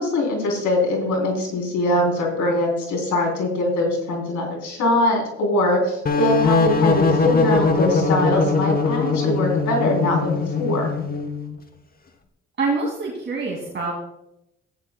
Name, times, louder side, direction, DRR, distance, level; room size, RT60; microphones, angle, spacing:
voice 1, 0.0-10.9, left 1 dB, 75° left, 0 dB, 3.6 m, -22 dB
sound 1, 6.1-11.6, left 3 dB, 30° left, 1.1 m, -21 dB
voice 2, 12.6-13.9, right 3 dB, 40° right, -3 dB, 2.4 m, -25 dB
14.5 x 10.0 x 2.2 m, 0.85 s
cardioid pair, 90°, 30 cm